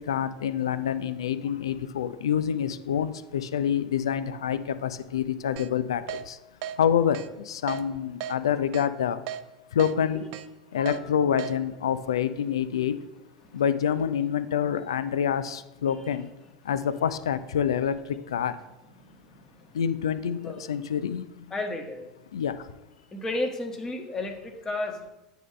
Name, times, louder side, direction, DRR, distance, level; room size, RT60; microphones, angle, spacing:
voice 1, 0.0-6.4 6.8-9.2 9.7-10.2 10.7-13.0 13.5-16.3 16.6-18.6 19.7-21.5 22.3-22.7, left 8 dB, 80° left, 13 dB, 0.4 m, -27 dB
Keyboard (musical), 5.6-5.7 6.1-6.2 6.6-6.8 7.1-7.3 7.7-7.8 8.2-8.3 8.7-8.9 9.3-9.4 9.8-9.9 10.3-10.5 10.9-11.0 11.4-11.5, right 10 dB, 60° right, 0.5 m, -34 dB
voice 2, 19.0-19.8 20.4-20.6 21.5-22.1 23.1-25.1, left 2 dB, 20° left, 3 dB, 1.3 m, -33 dB
9.1 x 3.7 x 5.5 m, 0.99 s
hypercardioid pair, 80°, 3 cm